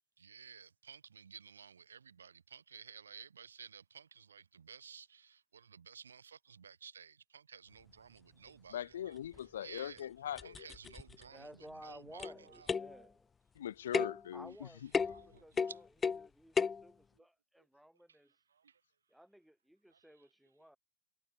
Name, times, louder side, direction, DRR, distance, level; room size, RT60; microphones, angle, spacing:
voice 1, 0.2-10.1 10.4-13.0 14.5-16.2 17.1-17.2 18.1-18.8 19.9-20.3, right 7 dB, 70° right, 1.8 m, -55 dB
voice 2, 8.7-10.7 13.6-14.5, left 10 dB, 60° left, 1.0 m, -41 dB
sound 1, 9.3-9.4 10.0-10.1 10.4-11.2 12.2-12.4 12.7-13.0 13.9-14.3 14.9-15.3 15.6-16.3 16.6-16.8, left 5 dB, 15° left, 0.6 m, -34 dB
voice 3, 11.2-13.3 14.3-15.9 16.1-18.3 19.1-20.8, equal, ahead, 4.6 m, -56 dB
figure-of-eight pair, 90°, 0 cm